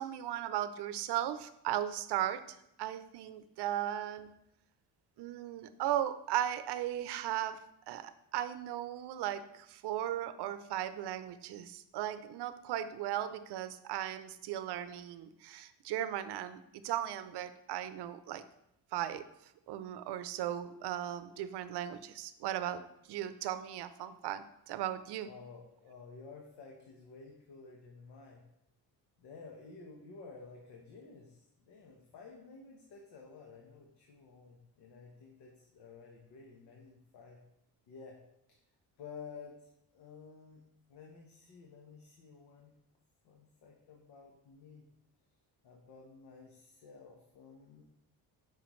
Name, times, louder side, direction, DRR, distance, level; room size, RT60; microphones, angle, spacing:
voice 1, 0.0-4.3 5.2-7.6 7.9-18.4 18.9-19.2 19.7-22.8 23.1-25.3, right 12 dB, 80° right, 12 dB, 0.6 m, -37 dB
voice 2, 25.3-28.4 29.2-37.4 37.9-38.2 38.5-38.6 39.0-40.6 40.9-42.7 43.2-44.9 45.6-47.8, left 4 dB, 80° left, 0 dB, 1.2 m, -52 dB
9.2 x 5.3 x 3.1 m, 0.81 s
cardioid pair, 160°, 40 cm